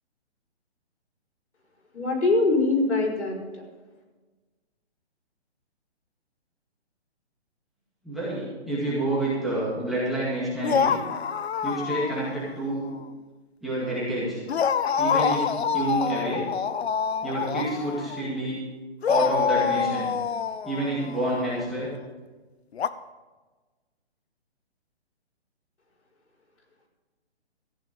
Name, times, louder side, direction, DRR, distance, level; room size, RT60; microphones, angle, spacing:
voice 1, 1.9-3.6, left 3 dB, 90° left, -1 dB, 5.1 m, -23 dB
voice 2, 8.0-11.0 11.6-12.8 13.6-14.4 15.0-15.5 15.7-16.4 17.2-18.6 19.1-20.1 20.6-21.9, right 1 dB, ahead, -9 dB, 2.2 m, -28 dB
sound 1, 10.6-12.5 12.8-13.0 14.5-18.3 19.0-21.5 22.7-22.9, left 7 dB, 70° left, 0.7 m, -26 dB
14.5 x 9.0 x 5.2 m, 1.3 s
hypercardioid pair, 165°, 33 cm